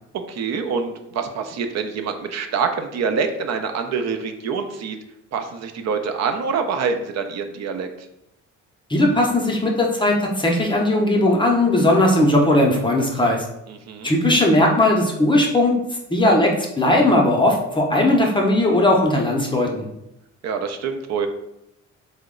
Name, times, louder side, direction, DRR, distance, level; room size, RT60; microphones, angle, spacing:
voice 1, 0.1-5.0 5.3-8.1 13.7-14.1 20.4-21.3, right 5 dB, 60° right, 7 dB, 0.5 m, -26 dB
voice 2, 8.9-13.5 14.0-15.8 16.1-19.9, left 1 dB, 15° left, -1 dB, 0.6 m, -18 dB
2.9 x 2.1 x 3.6 m, 0.84 s
cardioid pair, 90°, 30 cm